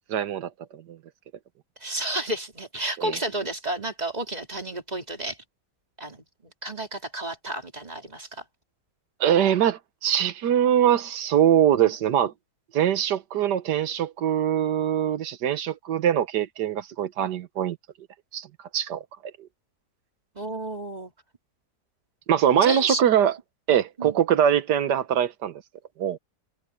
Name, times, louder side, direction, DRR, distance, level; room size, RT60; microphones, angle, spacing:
voice 1, 0.1-1.0 3.0-3.2 9.2-12.3 12.7-17.8 18.3-18.5 18.7-19.5 22.3-23.3 23.7-25.6 26.0-26.2, right 10 dB, 80° right, 1.6 m, -23 dB
voice 2, 1.8-5.4 6.0-8.4 20.3-21.1 22.6-23.0 24.0-24.2, right 1 dB, 25° right, 3.0 m, -32 dB
omnidirectional pair, 1.8 m